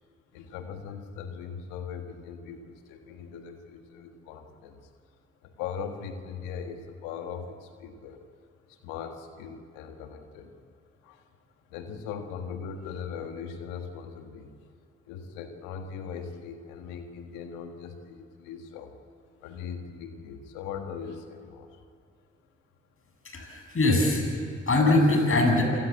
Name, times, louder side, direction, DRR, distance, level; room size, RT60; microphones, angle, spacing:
voice 1, 0.3-4.9 5.4-8.2 8.7-10.5 11.0-11.2 11.7-14.5 15.0-19.0 19.4-21.8, left 6 dB, 85° left, 6 dB, 1.7 m, -40 dB
voice 2, 23.2-25.6, left 2 dB, 45° left, 2 dB, 7.6 m, -23 dB
27.5 x 17.0 x 8.4 m, 2.3 s
hypercardioid pair, 40°, 31 cm